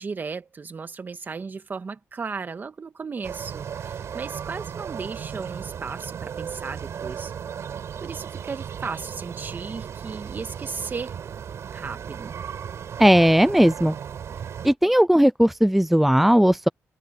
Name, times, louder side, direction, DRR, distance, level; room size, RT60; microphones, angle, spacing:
voice 1, 0.0-7.3 8.0-11.2 11.7-12.4, right 5 dB, 40° right, 1.9 m, -35 dB
sound 1, 3.2-14.7, right 8 dB, 65° right, 5.9 m, -35 dB
voice 2, 13.0-13.9 14.6-16.7, equal, 5° right, 0.5 m, -17 dB
cardioid pair, 95°, 5 cm